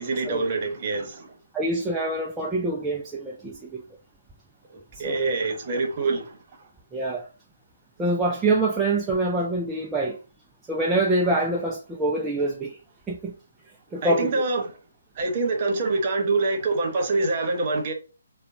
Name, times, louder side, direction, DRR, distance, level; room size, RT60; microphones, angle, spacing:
voice 1, 0.0-1.3 4.7-6.4 14.0-14.7 15.1-17.9, right 3 dB, 35° right, 1.1 m, -25 dB
voice 2, 1.5-3.8 4.9-5.3 6.9-7.3 8.0-10.2 10.7-12.8 13.1-13.3 13.9-14.4, right 2 dB, 5° right, 0.4 m, -25 dB
6.6 x 2.3 x 2.7 m
figure-of-eight pair, 140°, 0 cm